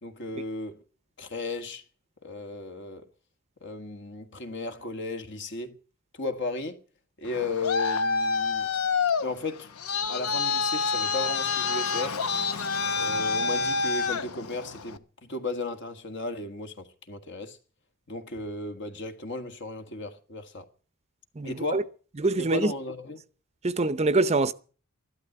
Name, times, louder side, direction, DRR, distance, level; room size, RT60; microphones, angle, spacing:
voice 1, 0.0-0.8 1.2-1.8 2.2-3.1 3.6-5.7 6.1-6.8 7.2-8.7 9.2-9.7 10.1-12.2 13.0-17.6 18.1-20.7 21.4-21.9 22.4-23.2, left 3 dB, 55° left, 1.7 m, -35 dB
Traffic noise roadway noise, 7.3-15.0, left 4 dB, 85° left, 1.0 m, -27 dB
voice 2, 21.4-21.8 22.2-22.7 23.6-24.5, right 2 dB, 30° right, 0.7 m, -24 dB
13.5 x 12.0 x 7.8 m
head